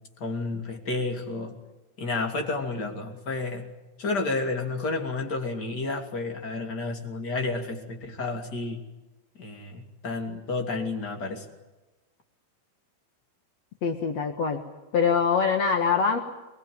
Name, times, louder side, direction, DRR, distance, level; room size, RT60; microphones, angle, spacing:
voice 1, 0.2-1.5 2.0-3.7 4.0-8.8 9.4-11.5, left 3 dB, 25° left, 4 dB, 2.5 m, -31 dB
voice 2, 13.8-14.6 14.9-16.2, left 6 dB, 70° left, 5 dB, 1.5 m, -23 dB
23.0 x 22.5 x 9.6 m, 1.1 s
omnidirectional pair, 5.5 m